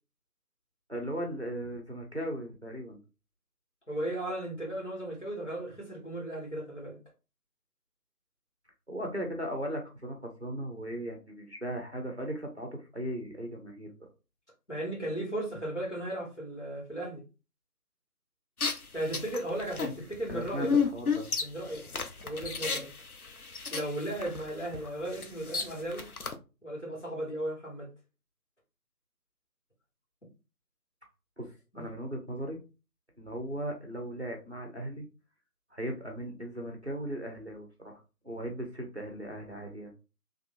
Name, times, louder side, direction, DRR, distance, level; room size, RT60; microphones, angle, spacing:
voice 1, 0.9-3.0 8.9-14.1 20.3-21.3 31.4-32.6 33.2-35.1 35.7-38.0 38.2-39.9, equal, 45° right, 0.8 m, -37 dB
voice 2, 3.9-7.0 14.7-17.2 18.9-20.7 21.4-21.9 22.2-22.9 23.7-26.0 26.6-27.9 31.7-31.8, right 1 dB, 45° left, 1.8 m, -36 dB
sound 1, 18.6-26.3, left 5 dB, 65° left, 0.6 m, -33 dB
3.7 x 2.9 x 2.6 m
figure-of-eight pair, 175°, 47 cm